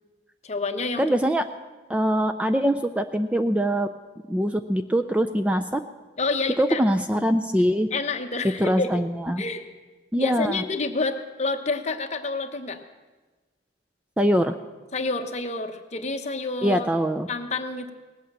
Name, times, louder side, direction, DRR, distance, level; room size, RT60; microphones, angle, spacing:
voice 1, 0.4-1.0 6.2-6.8 7.9-8.9 9.4-9.6 10.2-12.8 14.9-16.9 17.3-17.9, left 3 dB, 40° left, 6 dB, 1.0 m, -28 dB
voice 2, 1.0-1.4 1.9-3.9 4.3-5.8 6.6-7.9 8.6-9.4 10.1-10.6 14.2-14.5 16.6-17.3, equal, 5° right, 7 dB, 0.4 m, -23 dB
18.5 x 8.4 x 7.6 m, 1.3 s
head